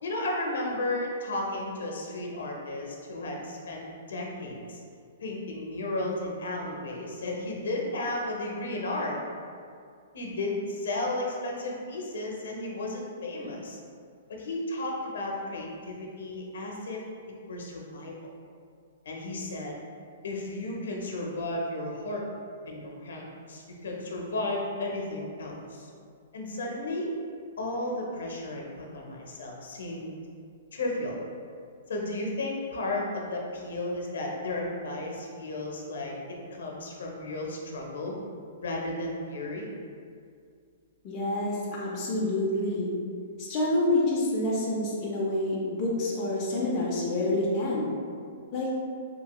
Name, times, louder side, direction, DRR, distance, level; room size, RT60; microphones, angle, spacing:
voice 1, 0.0-3.8 4.1-4.8 5.2-9.2 10.1-13.8 14.4-17.0 17.5-18.4 19.0-19.8 20.2-22.2 22.7-25.9 26.3-27.1 27.6-30.2 30.7-31.2 31.9-36.1 36.5-38.2 38.6-39.7, left 2 dB, 75° left, -1 dB, 0.6 m, -33 dB
voice 2, 41.0-42.9 43.4-47.9 48.5-48.7, left 1 dB, 20° left, -6 dB, 0.4 m, -27 dB
2.9 x 2.8 x 2.2 m, 2.3 s
hypercardioid pair, 180°, 0 cm